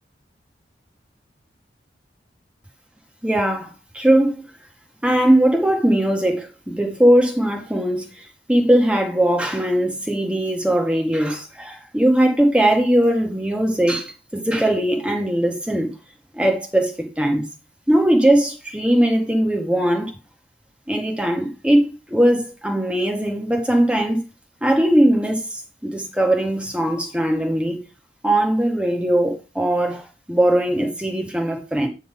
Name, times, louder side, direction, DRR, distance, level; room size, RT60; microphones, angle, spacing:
voice 1, 3.2-4.4 5.0-15.9 16.3-17.4 17.9-20.1 20.9-24.2 24.6-27.8 28.2-31.9, right 1 dB, 5° right, 1.8 m, -20 dB
9.2 x 3.9 x 5.3 m
head